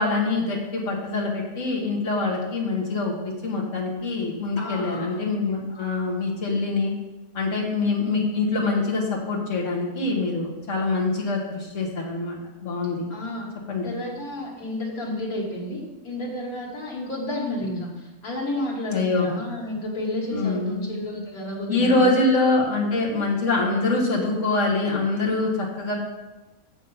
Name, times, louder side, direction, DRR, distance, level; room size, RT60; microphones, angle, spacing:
voice 1, 0.0-6.9 7.3-13.1 13.7-13.9 18.9-19.3 20.3-20.9 21.7-25.9, left 3 dB, 60° left, -2 dB, 1.9 m, -24 dB
voice 2, 4.6-5.2 5.7-5.9 13.1-13.5 13.8-17.9 18.2-21.9, left 1 dB, 90° left, -3 dB, 2.3 m, -31 dB
7.3 x 5.8 x 5.6 m, 1.1 s
omnidirectional pair, 1.5 m